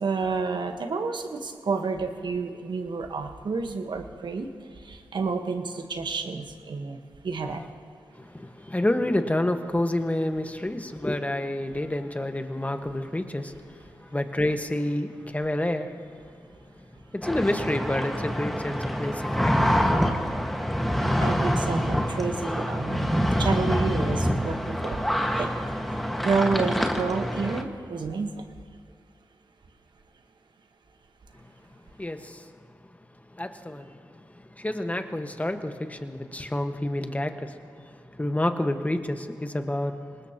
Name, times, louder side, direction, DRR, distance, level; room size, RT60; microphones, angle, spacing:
voice 1, 0.0-4.5 4.9-7.0 7.2-7.6 21.2-25.5 26.2-28.4, right 4 dB, 65° right, 5 dB, 1.4 m, -29 dB
voice 2, 8.2-15.9 16.7-16.9 17.1-19.7 32.0-32.5 33.3-33.9 34.3-40.0, left 1 dB, 20° left, 6 dB, 1.5 m, -29 dB
sound 1, 17.2-27.6, equal, ahead, 1.7 m, -26 dB
24.5 x 19.0 x 3.0 m, 2.1 s
supercardioid pair, 40°, 8 cm